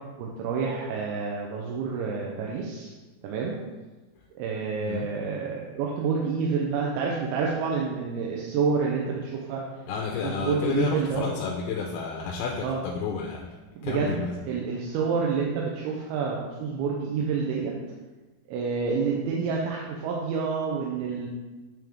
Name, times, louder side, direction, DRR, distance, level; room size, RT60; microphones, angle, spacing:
voice 1, 0.2-2.9 3.2-3.6 4.4-9.6 10.2-11.3 12.6-12.8 13.8-14.1 14.4-17.7 18.5-21.3, right 5 dB, 90° right, -2 dB, 2.6 m, -28 dB
voice 2, 4.8-5.1 9.9-13.4 13.8-14.4, left 6 dB, 90° left, 0 dB, 2.5 m, -31 dB
8.7 x 3.6 x 3.5 m, 1.2 s
omnidirectional pair, 4.4 m